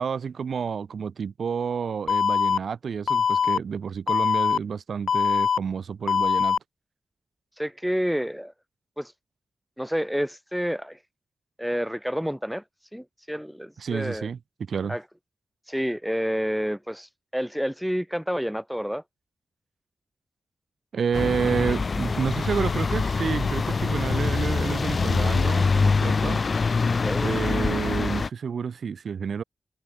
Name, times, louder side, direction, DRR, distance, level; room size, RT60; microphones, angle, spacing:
voice 1, 0.0-6.6 13.8-15.0 20.9-26.4 27.2-29.4, right 6 dB, 70° right, 5.1 m, -29 dB
Alarm, 2.1-2.6 3.1-3.6 4.1-4.6 5.1-5.6 6.1-6.6, left 6 dB, 75° left, 0.4 m, -22 dB
voice 2, 7.6-8.5 9.0-9.1 9.8-11.0 11.6-12.6 12.9-14.3 14.9-15.0 15.7-19.0 27.0-27.3, equal, ahead, 4.4 m, -29 dB
sound 1, 21.1-28.3, left 4 dB, 45° left, 1.1 m, -24 dB
wide cardioid pair, 90°, 0 cm